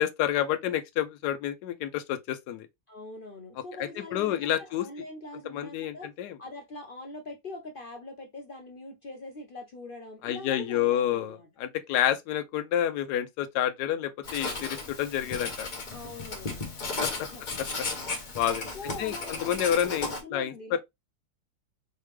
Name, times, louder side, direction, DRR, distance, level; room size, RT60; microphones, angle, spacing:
voice 1, 0.0-2.7 4.1-4.9 5.5-6.4 10.2-15.7 17.0-17.3 18.3-18.7 19.0-19.1 19.4-20.8, left 11 dB, 80° left, 1.1 m, -29 dB
voice 2, 2.9-6.1 6.4-11.5 15.9-16.7 17.2-17.4 18.7-20.8, left 2 dB, 55° left, 0.5 m, -43 dB
Writing, 14.2-20.2, left 3 dB, 35° left, 0.9 m, -35 dB
4.6 x 3.2 x 3.3 m
omnidirectional pair, 1.7 m